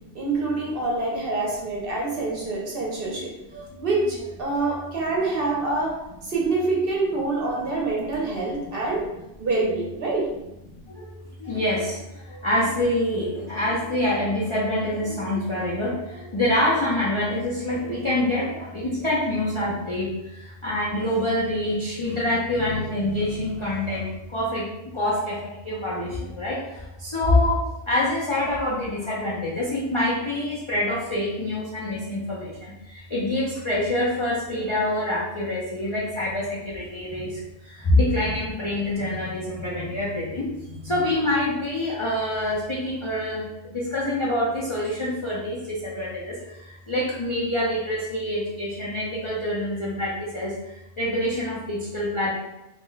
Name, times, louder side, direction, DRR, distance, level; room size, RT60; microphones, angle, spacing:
voice 1, 0.1-3.3 3.8-5.9 6.2-9.0 9.4-10.3, right 3 dB, 55° right, -3 dB, 0.8 m, -26 dB
voice 2, 3.5-3.9 4.6-4.8 10.8-11.1 11.4-27.6 27.9-52.3, left 1 dB, 50° left, -7 dB, 0.3 m, -26 dB
2.4 x 2.0 x 3.8 m, 0.91 s
omnidirectional pair, 1.3 m